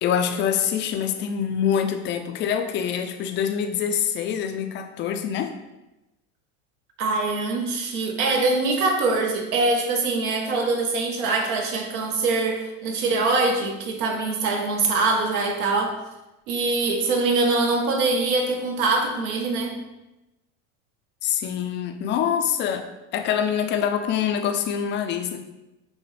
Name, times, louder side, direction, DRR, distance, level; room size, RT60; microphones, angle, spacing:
voice 1, 0.0-5.6 21.2-25.4, left 8 dB, 30° left, 6 dB, 0.4 m, -25 dB
voice 2, 7.0-16.0 16.5-19.8, right 3 dB, 75° right, 2 dB, 1.0 m, -23 dB
5.9 x 2.1 x 3.2 m, 0.97 s
supercardioid pair, 110°, 42 cm